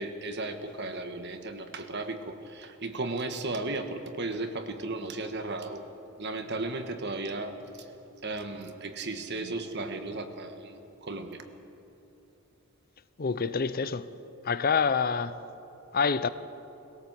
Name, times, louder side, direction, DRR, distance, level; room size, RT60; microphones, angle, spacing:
voice 1, 0.0-5.8 6.2-7.6 8.2-10.8 11.1-11.4, right 2 dB, 50° right, 1.5 m, -35 dB
voice 2, 13.2-14.1 14.4-15.4 15.9-16.3, left 5 dB, 45° left, 0.6 m, -26 dB
21.5 x 17.0 x 7.6 m
head